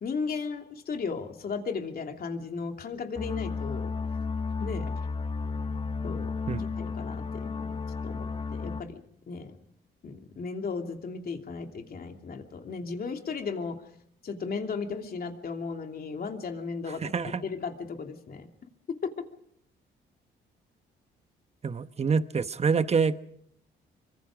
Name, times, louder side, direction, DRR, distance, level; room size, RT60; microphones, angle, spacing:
voice 1, 0.0-3.9 4.6-4.9 6.0-6.3 6.8-7.8 8.0-9.0 9.3-9.6 10.0-13.8 14.2-17.1 17.4-18.5 18.9-19.1, left 5 dB, 50° left, 4 dB, 3.0 m, -35 dB
sound 1, 3.2-8.8, left 4 dB, 30° left, 1.2 m, -33 dB
voice 2, 17.0-17.4 21.6-23.2, right 5 dB, 30° right, 12 dB, 1.1 m, -26 dB
25.0 x 24.0 x 5.0 m, 0.72 s
cardioid pair, 90°, 20 cm